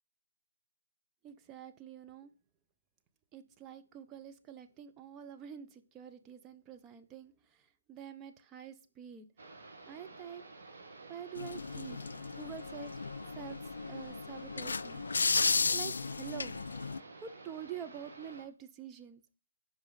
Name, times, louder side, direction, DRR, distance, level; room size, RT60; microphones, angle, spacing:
voice 1, 1.2-2.3 3.3-9.3 9.9-10.4 11.1-12.0 12.4-12.9 13.4-13.6 13.9-15.1 15.7-16.6 17.2-19.2, right 9 dB, 15° right, 8 dB, 0.5 m, -47 dB
sound 1, 9.4-18.5, right 3 dB, 55° right, 1.6 m, -52 dB
sound 2, 11.4-17.0, left 4 dB, 70° left, 0.3 m, -34 dB
5.2 x 4.8 x 3.9 m, 0.35 s
figure-of-eight pair, 140°, 0 cm